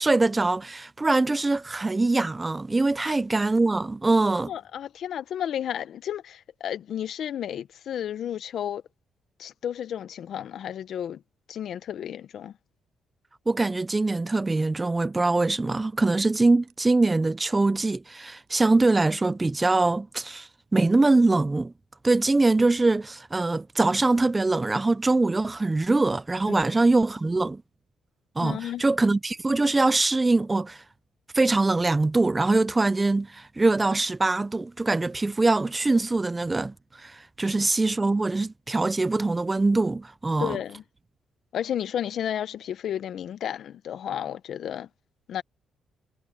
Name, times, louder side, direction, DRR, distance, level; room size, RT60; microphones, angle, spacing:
voice 1, 0.0-4.5 13.5-21.7 22.0-27.6 28.4-30.8 31.3-40.6, right 3 dB, 20° right, 0.4 m, -23 dB
voice 2, 4.5-8.8 9.4-11.2 11.5-12.5 26.5-26.7 28.4-28.8 37.4-37.6 40.4-40.8 41.5-44.9 45.3-45.4, left 10 dB, 65° left, 0.9 m, -32 dB
sound 1, 15.2-15.3 16.2-17.2 17.8-18.2 18.5-19.5 19.8-19.9, right 12 dB, 80° right, 7.5 m, -63 dB
cardioid pair, 90°, 0 cm